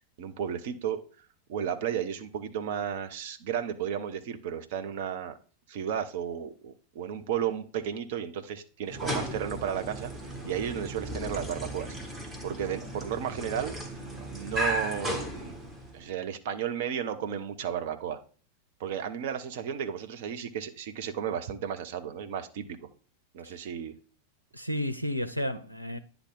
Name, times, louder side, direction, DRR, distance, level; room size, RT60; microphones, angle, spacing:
voice 1, 0.2-1.0 1.5-5.3 5.7-10.1 10.4-12.0 12.4-13.8 14.3-15.6 15.9-18.2 18.8-22.8 23.3-23.9, right 9 dB, 50° right, 0.6 m, -33 dB
sound 1, 8.8-16.1, equal, 15° right, 1.4 m, -36 dB
voice 2, 24.5-26.0, equal, 90° left, 0.4 m, -32 dB
9.7 x 3.5 x 3.8 m
figure-of-eight pair, 90°, 0 cm